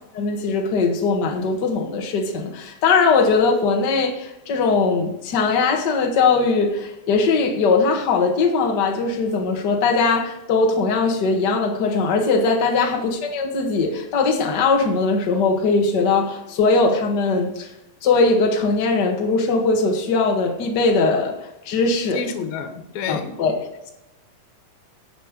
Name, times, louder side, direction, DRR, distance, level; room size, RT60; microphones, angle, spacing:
voice 1, 0.1-17.7 18.0-22.3 23.1-23.9, left 4 dB, 45° left, 1.4 m, -20 dB
voice 2, 22.1-23.3, left 7 dB, 85° left, 2.9 m, -29 dB
11.0 x 7.7 x 5.1 m
omnidirectional pair, 4.1 m